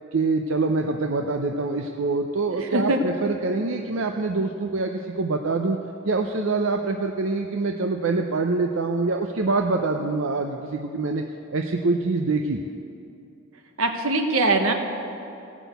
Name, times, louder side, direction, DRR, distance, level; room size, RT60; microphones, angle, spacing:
voice 1, 0.1-5.8 6.0-11.2 11.5-12.6, right 3 dB, 70° right, 3 dB, 0.6 m, -25 dB
voice 2, 13.8-14.7, right 2 dB, 85° right, 4 dB, 1.3 m, -21 dB
16.5 x 6.1 x 8.1 m, 2.7 s
head